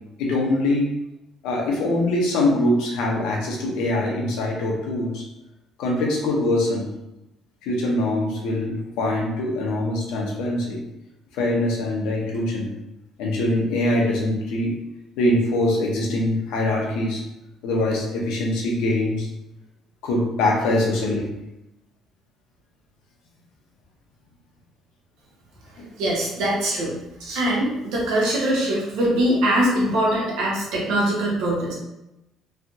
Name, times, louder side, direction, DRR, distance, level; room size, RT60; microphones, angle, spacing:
voice 1, 0.2-0.9 1.4-5.2 5.8-6.9 7.6-10.8 11.3-12.7 13.2-14.7 15.2-17.2 17.6-19.3 20.0-21.3 25.8-25.9, left 1 dB, 90° left, -1 dB, 0.8 m, -23 dB
voice 2, 26.0-31.7, right 1 dB, 80° right, -4 dB, 1.1 m, -22 dB
3.3 x 2.3 x 2.7 m, 0.93 s
cardioid pair, 145°, 0 cm